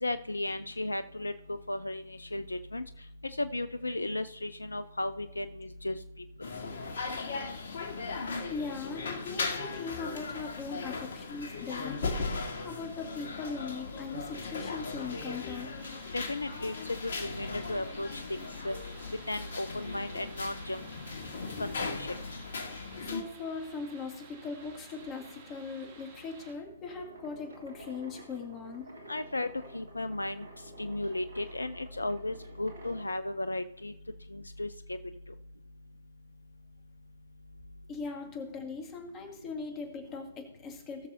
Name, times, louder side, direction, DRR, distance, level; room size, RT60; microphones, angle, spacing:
voice 1, 0.0-2.8 3.4-6.0 16.1-18.7 19.3-20.8 21.6-22.1 29.1-30.5 30.8-33.9 34.3-35.0, left 2 dB, 90° left, 12 dB, 0.5 m, -35 dB
sound 1, 6.4-23.2, left 4 dB, 60° left, 1.8 m, -38 dB
voice 2, 8.5-12.2 12.6-15.8 23.0-28.9 37.9-41.1, left 4 dB, 25° left, 2 dB, 2.4 m, -40 dB
sound 2, 15.8-26.5, right 5 dB, 45° right, 2.5 m, -54 dB
sound 3, 26.8-33.2, right 2 dB, 75° right, 2.6 m, -51 dB
19.5 x 6.6 x 2.7 m, 0.91 s
figure-of-eight pair, 130°, 0 cm